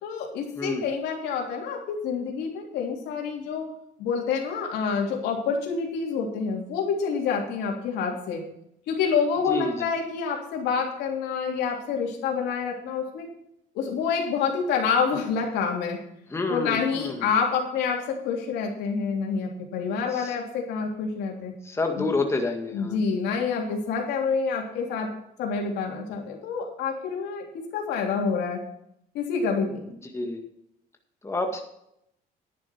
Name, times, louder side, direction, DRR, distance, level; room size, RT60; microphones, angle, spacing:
voice 1, 0.0-3.6 4.0-8.4 8.9-13.3 13.7-16.0 16.5-21.5 22.0-22.1 22.7-25.1 25.4-27.4 27.7-28.6 29.1-29.8, left 5 dB, 85° left, 1 dB, 3.3 m, -27 dB
voice 2, 16.3-17.3 20.1-20.4 21.6-23.0 30.1-30.4 31.2-31.6, left 3 dB, 15° left, 3 dB, 1.9 m, -28 dB
10.5 x 10.5 x 4.5 m, 0.75 s
cardioid pair, 110°, 17 cm